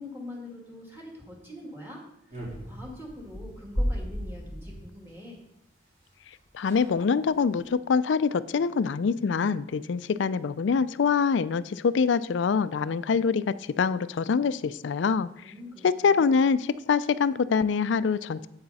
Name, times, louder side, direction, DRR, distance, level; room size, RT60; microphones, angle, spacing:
voice 1, 0.0-5.4 15.4-16.4, left 1 dB, 15° right, -2 dB, 2.1 m, -44 dB
sound 1, 2.3-4.8 6.0-6.1 6.3-6.4 6.6-6.9 7.4-7.7, equal, 45° right, 4.1 m, -34 dB
voice 2, 6.5-15.3 15.8-16.6 16.9-18.5, left 5 dB, 85° left, 16 dB, 0.4 m, -25 dB
8.7 x 8.7 x 4.1 m, 0.78 s
head